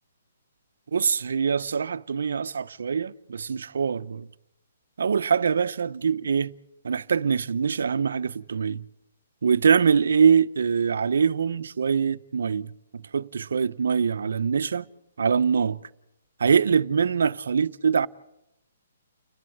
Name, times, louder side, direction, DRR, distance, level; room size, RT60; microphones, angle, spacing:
voice 1, 0.9-4.3 5.0-6.5 6.8-8.8 9.4-14.9 15.2-15.8 16.4-18.1, right 6 dB, 75° right, 0.8 m, -23 dB
29.5 x 11.0 x 8.7 m
hypercardioid pair, 165°, 0 cm